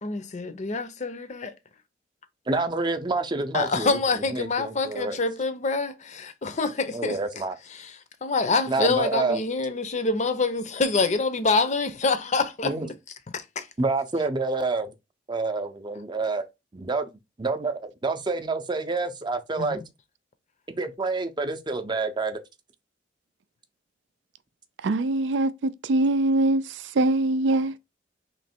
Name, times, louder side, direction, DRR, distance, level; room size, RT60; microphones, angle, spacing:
voice 1, 0.0-1.5 3.5-7.2 7.8-7.9 8.2-12.9 13.3-13.7 19.6-19.8, left 3 dB, 40° left, 0.6 m, -26 dB
voice 2, 2.5-4.0 4.3-5.2 6.9-7.5 8.7-9.4 12.6-12.9 13.8-14.9 15.3-16.4 16.7-17.0 17.4-19.8 20.8-22.4, right 3 dB, 25° right, 0.5 m, -28 dB
voice 3, 24.8-26.6 27.0-27.7, right 2 dB, 85° right, 0.4 m, -22 dB
3.2 x 3.0 x 4.3 m
head